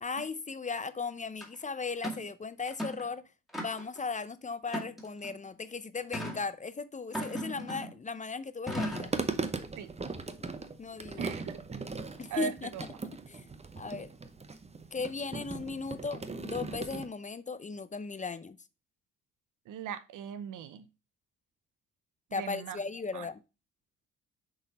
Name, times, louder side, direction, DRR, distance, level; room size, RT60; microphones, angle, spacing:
voice 1, 0.0-3.2 3.6-9.1 10.4-11.3 12.2-12.7 13.3-13.4 13.8-14.1 14.9-18.6 22.3-23.4, left 4 dB, 25° left, 0.6 m, -37 dB
sound 1, 1.4-1.5 2.0-2.3 2.7-3.1 3.5-4.0 4.7-5.3 6.1-6.4 7.1-8.0 8.7-9.2, equal, ahead, 2.0 m, -37 dB
sound 2, 8.7-17.1, right 4 dB, 20° right, 0.8 m, -39 dB
voice 2, 11.2-11.6 12.3-12.8 19.7-20.9 22.3-22.8 23.1-23.3, right 7 dB, 70° right, 0.7 m, -38 dB
6.5 x 3.9 x 4.1 m
supercardioid pair, 65°, 32 cm